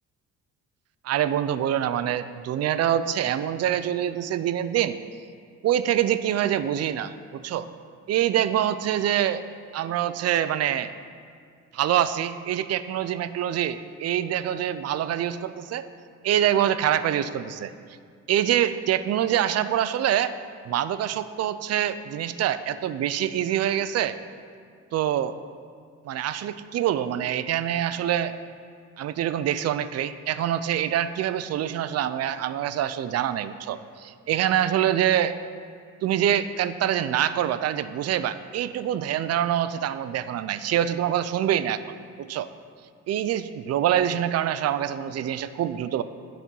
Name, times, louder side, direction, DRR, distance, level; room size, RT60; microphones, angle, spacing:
voice 1, 1.0-5.0 5.6-7.7 8.1-9.5 9.7-10.9 11.7-15.9 16.2-17.7 18.3-20.3 20.7-24.2 24.9-25.4 26.1-28.4 29.0-35.4 36.0-42.5 43.1-46.0, right 10 dB, 55° right, 13 dB, 0.4 m, -25 dB
9.9 x 4.3 x 5.4 m, 2.2 s
cardioid pair, 90°, 30 cm